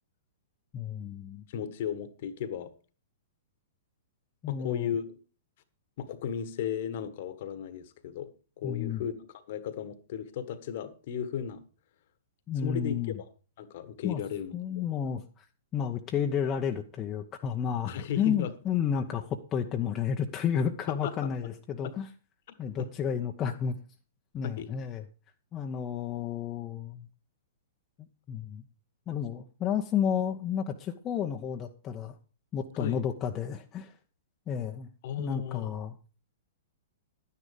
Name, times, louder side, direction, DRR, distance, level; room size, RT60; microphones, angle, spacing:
voice 1, 0.7-1.4 4.4-4.9 8.6-9.0 12.5-13.1 14.0-14.2 14.5-15.4 15.7-22.1 22.6-23.8 24.3-25.0 25.5-27.1 28.3-28.6 29.1-32.1 32.5-33.9 34.5-34.9 35.2-35.9, left 8 dB, 25° left, 3 dB, 0.9 m, -31 dB
voice 2, 1.5-2.7 4.5-5.0 6.0-8.3 8.6-11.6 12.6-13.2 13.6-14.8 17.9-18.5 20.9-21.3 21.8-21.9 22.5-22.9 24.4-24.7 32.8-33.0 35.0-35.7, left 8 dB, 50° left, 13 dB, 1.5 m, -35 dB
12.0 x 9.9 x 5.1 m, 0.36 s
figure-of-eight pair, 110°, 0 cm